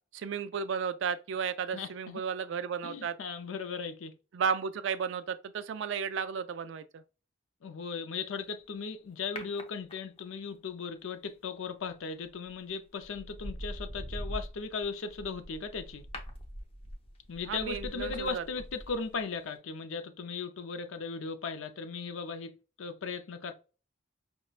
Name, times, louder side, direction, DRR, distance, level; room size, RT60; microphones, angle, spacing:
voice 1, 0.1-3.2 4.3-7.0 17.4-18.4, right 6 dB, 65° right, 0.3 m, -33 dB
voice 2, 1.7-2.2 2.8-4.1 7.6-16.1 17.3-23.5, left 5 dB, 80° left, 0.5 m, -37 dB
sound 1, 9.4-10.4 12.3-12.5 13.0-19.2 19.5-19.6, equal, 30° left, 0.6 m, -43 dB
5.3 x 2.1 x 2.4 m
head